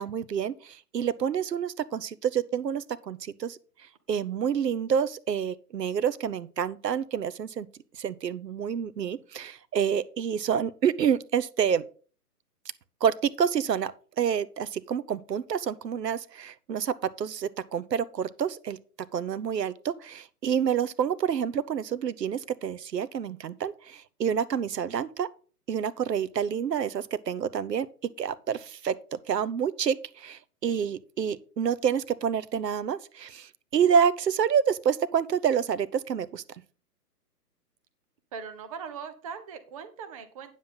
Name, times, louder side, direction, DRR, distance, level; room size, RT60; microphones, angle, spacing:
voice 1, 0.0-3.6 4.1-7.7 8.0-11.8 13.0-18.8 19.1-25.3 25.7-27.9 28.2-36.4, right 8 dB, 85° right, 0.8 m, -28 dB
voice 2, 38.3-40.5, right 6 dB, 20° right, 0.7 m, -40 dB
9.4 x 7.3 x 3.8 m
hypercardioid pair, 145°, 48 cm